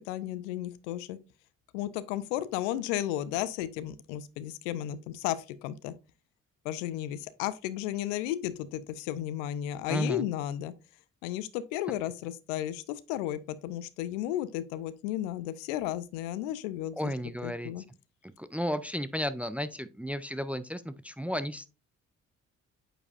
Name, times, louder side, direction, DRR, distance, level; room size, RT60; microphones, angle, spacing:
voice 1, 0.1-1.2 1.7-5.9 6.6-10.7 11.2-17.1 17.4-17.8, left 12 dB, 75° left, 0.6 m, -34 dB
voice 2, 9.9-10.3 17.0-17.7 18.4-21.7, equal, 5° right, 0.4 m, -33 dB
8.7 x 4.7 x 2.4 m
figure-of-eight pair, 40°, 38 cm